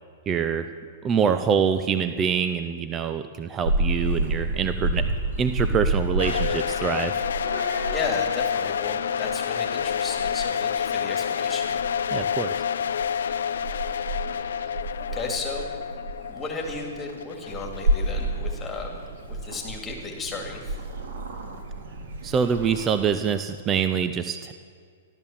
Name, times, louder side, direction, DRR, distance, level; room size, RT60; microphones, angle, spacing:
voice 1, 0.3-0.7 1.0-5.1 5.4-7.2 12.1-12.6 22.2-24.5, right 7 dB, 20° right, 10 dB, 0.5 m, -25 dB
Purr / Meow, 3.6-23.1, right 2 dB, 75° right, 2.4 m, -31 dB
sound 1, 6.2-19.0, left 8 dB, 85° left, 0.4 m, -29 dB
voice 2, 7.9-11.7 15.1-15.7 16.3-19.0 19.3-20.8, left 3 dB, 10° left, 1 dB, 2.3 m, -34 dB
14.5 x 12.5 x 7.3 m, 2.1 s
hypercardioid pair, 155°, 0 cm